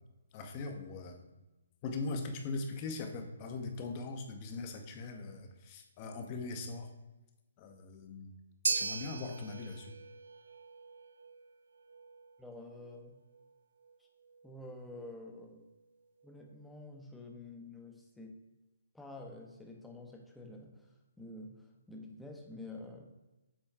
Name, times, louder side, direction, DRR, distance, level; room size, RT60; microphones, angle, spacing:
voice 1, 0.3-1.2 1.8-6.9 7.6-8.3 8.7-9.9, left 3 dB, 30° left, 5 dB, 0.9 m, -40 dB
sound 1, 8.6-17.0, right 5 dB, 70° right, 0.3 m, -42 dB
voice 2, 12.4-13.2 14.0-14.1 14.4-15.6 16.2-18.4 18.9-20.9 21.2-23.0, left 2 dB, 5° left, 1 dB, 0.8 m, -49 dB
7.3 x 4.3 x 3.6 m, 1.1 s
figure-of-eight pair, 135°, 0 cm